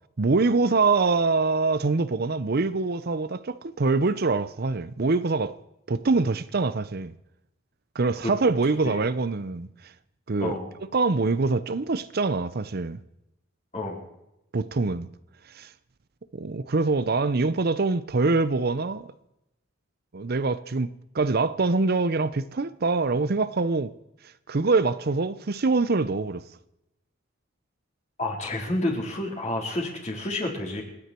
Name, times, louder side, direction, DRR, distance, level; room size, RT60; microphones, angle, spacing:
voice 1, 0.2-5.6 5.9-7.1 7.9-9.7 10.3-10.6 10.9-13.0 14.5-15.1 15.5-15.7 16.3-19.1 20.1-20.9 21.1-23.9 24.5-26.4, right 3 dB, 50° right, 0.7 m, -24 dB
voice 2, 28.2-30.8, left 1 dB, 35° left, 4.0 m, -29 dB
29.0 x 9.9 x 4.5 m
head